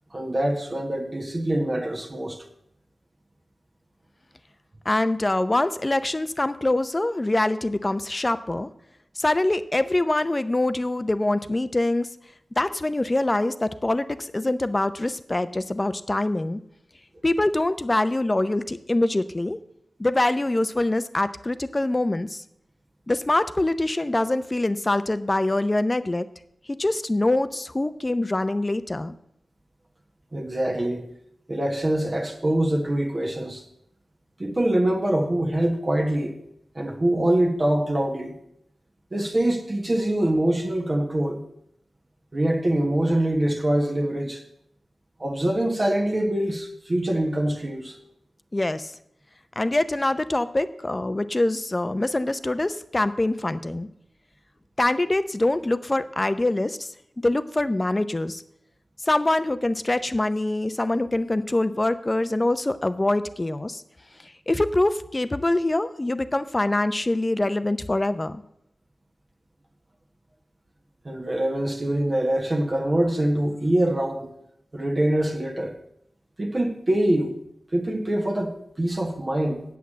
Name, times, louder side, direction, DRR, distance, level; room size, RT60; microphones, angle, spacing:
voice 1, 0.1-2.4 30.3-31.1 31.5-33.6 34.4-36.4 36.7-38.3 39.1-41.4 42.3-44.4 45.2-48.0 71.0-74.3 74.7-75.8 76.4-77.4 77.7-79.6, right 1 dB, 35° right, 1.3 m, -24 dB
voice 2, 4.8-8.7 9.2-12.1 12.6-16.6 17.2-19.6 20.0-22.4 23.1-26.3 26.7-29.1 48.5-49.0 49.6-53.9 54.8-58.4 59.0-63.8 64.2-68.4, left 2 dB, 30° left, 0.6 m, -24 dB
8.2 x 8.2 x 7.4 m
wide cardioid pair, 75°, 0 cm